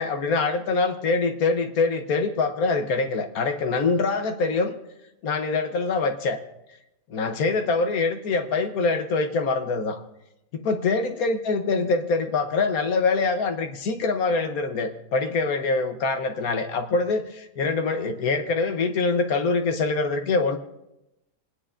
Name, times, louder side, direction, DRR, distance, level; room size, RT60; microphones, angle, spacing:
voice 1, 0.0-4.7 5.2-6.4 7.1-10.0 10.5-20.6, left 3 dB, 70° left, 7 dB, 1.3 m, -24 dB
26.5 x 9.8 x 2.5 m, 0.90 s
omnidirectional pair, 1.6 m